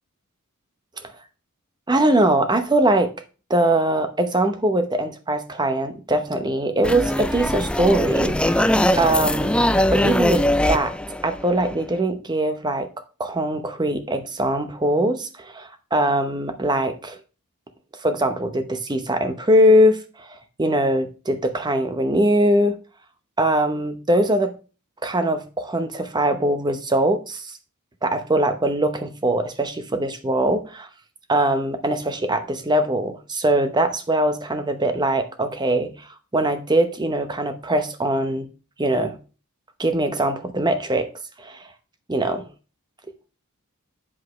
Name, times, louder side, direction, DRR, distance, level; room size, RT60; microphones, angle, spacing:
voice 1, 1.9-3.1 3.5-10.9 11.2-12.9 13.2-17.2 18.0-22.8 23.4-24.5 25.0-27.6 28.0-30.9 31.3-36.1 36.3-38.5 38.8-39.1 39.8-41.1 41.4-41.6 42.1-42.5, right 1 dB, 20° right, 0.9 m, -22 dB
sound 1, 6.8-12.0, left 1 dB, 5° left, 0.3 m, -21 dB
8.5 x 7.4 x 3.2 m
head